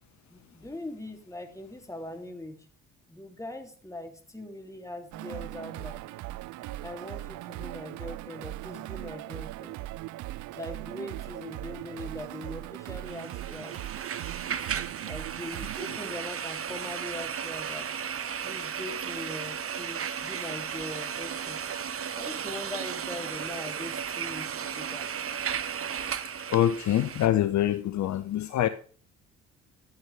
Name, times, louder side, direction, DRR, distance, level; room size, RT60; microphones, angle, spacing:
voice 1, 0.3-2.5 3.1-6.0 6.8-9.8 10.5-13.8 15.0-17.9 18.4-21.6 22.1-25.1, left 1 dB, 10° left, 2.7 m, -41 dB
sound 1, 5.1-17.2, right 17 dB, 50° right, 0.4 m, -39 dB
sound 2, 13.0-27.3, right 8 dB, 35° right, 0.9 m, -35 dB
voice 2, 26.5-28.7, left 12 dB, 50° left, 0.7 m, -25 dB
11.0 x 8.8 x 3.3 m
hypercardioid pair, 45°, 38 cm